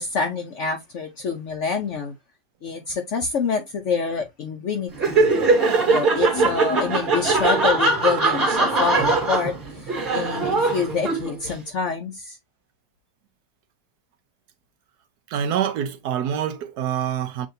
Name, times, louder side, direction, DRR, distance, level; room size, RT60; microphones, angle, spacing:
voice 1, 0.0-2.1 2.6-5.3 5.8-12.4, left 5 dB, 60° left, 0.8 m, -27 dB
Laughter, 4.9-11.5, right 3 dB, 30° right, 1.7 m, -21 dB
voice 2, 15.3-17.5, right 9 dB, 70° right, 1.1 m, -26 dB
7.5 x 2.6 x 2.6 m
omnidirectional pair, 1.9 m